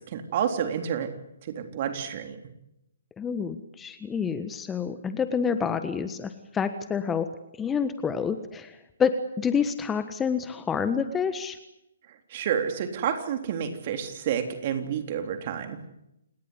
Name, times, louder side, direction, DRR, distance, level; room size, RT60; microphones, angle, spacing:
voice 1, 0.1-1.1 1.5-2.4 12.3-15.8, right 8 dB, 40° right, 6 dB, 3.6 m, -29 dB
voice 2, 3.2-7.3 7.6-11.6, left 6 dB, 10° left, 10 dB, 1.4 m, -28 dB
29.0 x 19.0 x 8.2 m, 0.86 s
figure-of-eight pair, 135°, 0 cm